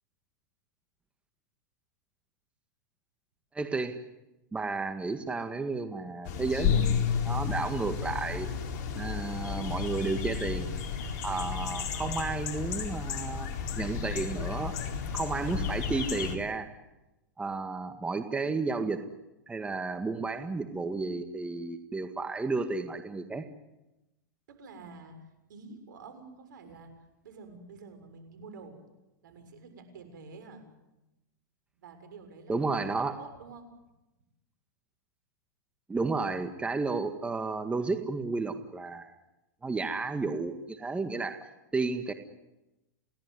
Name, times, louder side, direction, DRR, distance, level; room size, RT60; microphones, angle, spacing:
voice 1, 3.5-4.0 4.5-8.5 9.0-10.7 11.2-13.5 13.8-14.8 15.1-16.7 17.4-19.0 19.5-23.4 32.5-33.2 35.9-39.1 39.6-42.1, right 3 dB, 10° right, 7 dB, 1.8 m, -32 dB
sound 1, 6.2-16.4, left 7 dB, 50° left, 4.4 m, -32 dB
voice 2, 24.5-26.9 27.2-28.8 29.2-30.7 31.8-32.6 33.2-33.7, right 4 dB, 75° right, 8 dB, 7.0 m, -48 dB
29.0 x 18.0 x 9.7 m, 0.98 s
hypercardioid pair, 120°, 10 cm